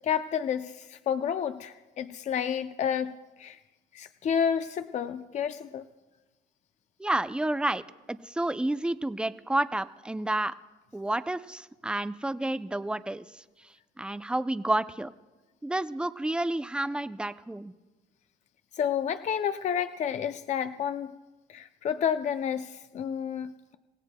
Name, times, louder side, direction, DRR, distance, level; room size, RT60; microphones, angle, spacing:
voice 1, 0.0-3.6 3.9-5.8 18.7-21.1 21.5-23.8, left 8 dB, 45° left, 10 dB, 0.5 m, -30 dB
voice 2, 7.0-7.8 8.1-10.6 10.9-13.4 14.0-15.1 15.6-17.7, right 1 dB, 5° right, 13 dB, 0.4 m, -30 dB
27.0 x 16.5 x 2.2 m, 1.2 s
cardioid pair, 110°, 17 cm